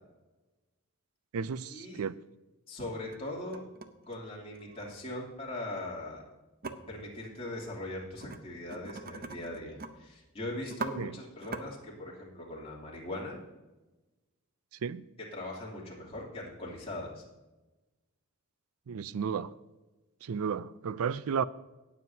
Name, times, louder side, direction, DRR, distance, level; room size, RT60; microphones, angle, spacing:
voice 1, 1.3-2.2 11.0-11.1 14.8-15.1 18.9-19.5 20.2-21.4, right 6 dB, 75° right, 0.4 m, -33 dB
voice 2, 2.7-3.6 4.1-6.2 6.9-13.4 15.3-17.2, left 1 dB, 25° left, 2.9 m, -40 dB
sound 1, 2.8-3.2 3.5-4.9 6.6-6.7 8.2-8.4 8.7-9.9 10.2-10.3 10.6-10.9 11.4-11.6, right 4 dB, 40° right, 0.7 m, -40 dB
18.5 x 7.6 x 2.8 m
head